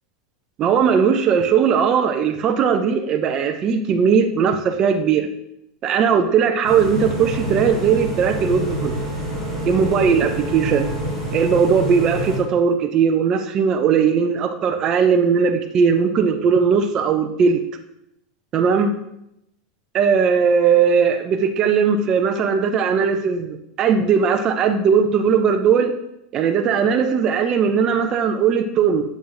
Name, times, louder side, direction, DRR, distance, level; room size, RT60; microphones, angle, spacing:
voice 1, 0.6-5.3 5.8-9.0 9.7-10.9 11.3-17.6 18.5-18.9 19.9-25.9 26.3-29.0, right 6 dB, 20° right, 5 dB, 0.4 m, -18 dB
sound 1, 6.6-12.4, right 1 dB, 10° left, 2.2 m, -27 dB
7.0 x 5.6 x 2.5 m, 0.80 s
supercardioid pair, 180°, 3 cm